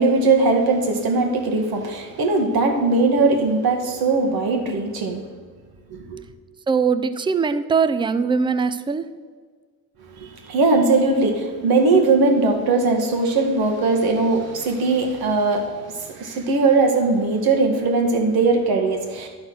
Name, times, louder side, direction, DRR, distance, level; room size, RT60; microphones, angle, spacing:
voice 1, 0.0-5.2 5.9-6.2 10.2-19.3, right 3 dB, 65° right, 4 dB, 1.7 m, -20 dB
voice 2, 6.7-9.1, right 5 dB, 15° right, 12 dB, 0.4 m, -21 dB
11.0 x 4.3 x 6.2 m, 1.5 s
supercardioid pair, 80°, 39 cm